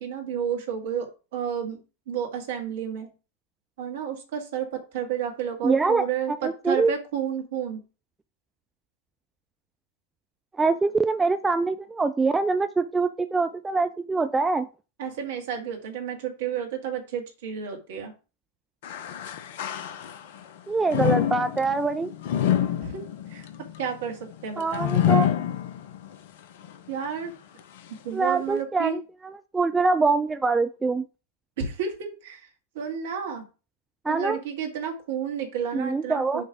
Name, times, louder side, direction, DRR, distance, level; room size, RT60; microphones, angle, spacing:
voice 1, 0.0-1.8 2.1-3.1 3.8-7.8 15.0-18.1 22.8-23.0 23.3-23.5 23.8-24.9 26.9-27.3 28.0-29.0 31.6-32.5 32.7-33.5 34.0-36.4, right 8 dB, 55° right, 3 dB, 1.8 m, -31 dB
voice 2, 5.6-6.9 10.6-14.7 20.7-22.1 24.6-25.3 28.1-31.0 34.0-34.4 35.7-36.4, right 4 dB, 10° right, 10 dB, 0.4 m, -24 dB
sound 1, 18.8-20.4 20.9-26.2 26.6-26.7 27.6-27.7, left 10 dB, 55° left, 0.6 m, -27 dB
6.6 x 3.2 x 4.9 m, 0.32 s
figure-of-eight pair, 90°, 0 cm